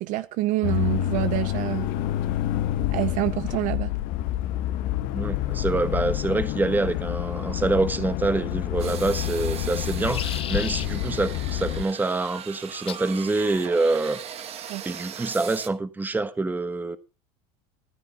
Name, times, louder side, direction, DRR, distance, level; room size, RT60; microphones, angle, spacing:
voice 1, 0.0-1.9 2.9-3.9 14.7-14.8, right 16 dB, 60° right, 0.7 m, -27 dB
sound 1, 0.6-11.8, left 13 dB, 65° left, 1.1 m, -28 dB
voice 2, 5.1-14.2 14.8-17.0, right 3 dB, 10° right, 1.3 m, -26 dB
sound 2, 8.8-9.3 9.8-10.9 12.9-13.1 14.1-14.5, left 10 dB, 40° left, 0.8 m, -36 dB
sound 3, 8.8-15.7, right 9 dB, 45° right, 1.4 m, -39 dB
14.5 x 11.5 x 4.2 m
supercardioid pair, 110°, 15 cm